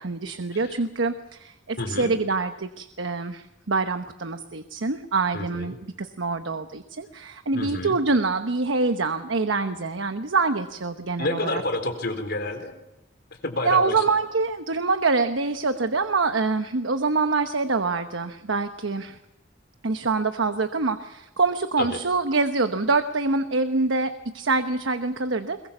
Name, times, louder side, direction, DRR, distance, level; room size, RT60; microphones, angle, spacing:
voice 1, 0.0-11.6 13.6-19.2 19.8-25.6, right 3 dB, 85° right, 8 dB, 1.1 m, -25 dB
voice 2, 1.8-2.1 5.3-5.7 7.5-8.0 11.2-12.7 13.4-14.2 21.8-22.0, left 2 dB, 60° left, 7 dB, 3.9 m, -29 dB
22.5 x 21.0 x 7.1 m, 0.93 s
head